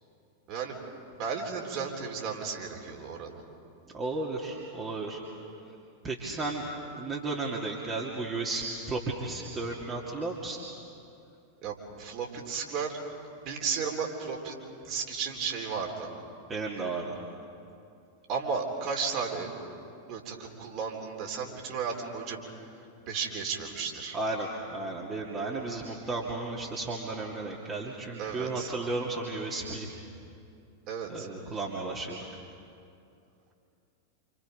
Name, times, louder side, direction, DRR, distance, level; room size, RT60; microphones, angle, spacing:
voice 1, 0.5-0.9 1.2-3.4 11.6-13.0 13.4-14.6 14.8-16.1 18.3-19.5 20.1-22.4 23.0-24.2 28.2-28.7 30.9-31.3, right 5 dB, 40° right, 1 dB, 4.0 m, -34 dB
voice 2, 3.9-5.2 5.7-5.8 6.0-6.6 7.0-10.6 16.5-17.2 24.1-30.0 31.1-32.2, right 3 dB, 20° right, -2 dB, 2.6 m, -34 dB
28.0 x 27.5 x 5.2 m, 2.6 s
figure-of-eight pair, 90°, 0 cm